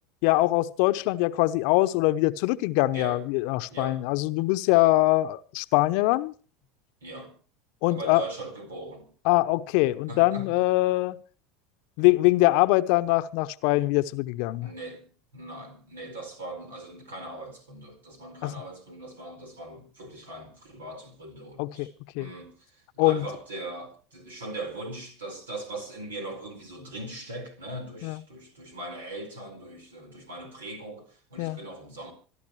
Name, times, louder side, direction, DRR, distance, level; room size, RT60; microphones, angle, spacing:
voice 1, 0.2-6.3 7.8-8.2 9.3-11.2 12.0-14.7 18.4-18.5 21.6-22.3 23.0-23.3 28.0-28.2 31.4-31.6, left 19 dB, 65° left, 0.8 m, -23 dB
voice 2, 2.9-3.2 3.7-4.0 7.0-7.4 7.9-9.1 10.1-10.5 14.6-32.1, right 2 dB, 85° right, 4.6 m, -40 dB
26.5 x 11.5 x 3.2 m
hypercardioid pair, 85°, 0 cm